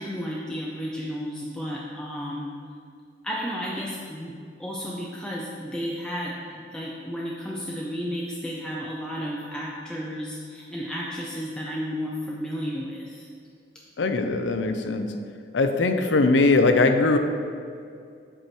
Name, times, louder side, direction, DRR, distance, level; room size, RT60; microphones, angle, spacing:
voice 1, 0.0-2.5 3.2-4.3 4.6-13.3, equal, 5° left, -4 dB, 0.5 m, -32 dB
voice 2, 14.0-15.1 15.5-17.2, left 3 dB, 75° left, 7 dB, 0.5 m, -20 dB
7.7 x 4.7 x 4.4 m, 2.3 s
head